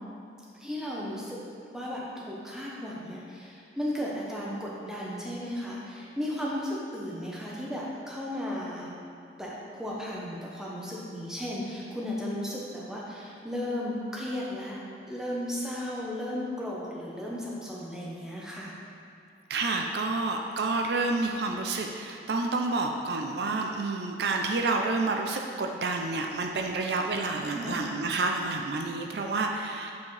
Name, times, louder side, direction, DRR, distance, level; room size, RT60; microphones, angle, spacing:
voice 1, 0.5-1.4 1.7-8.9 9.4-14.8 15.1-18.7 27.5-27.8, left 1 dB, 5° right, -5 dB, 0.9 m, -35 dB
voice 2, 19.5-29.9, right 3 dB, 60° right, 2 dB, 0.4 m, -29 dB
8.2 x 4.5 x 3.2 m, 2.6 s
head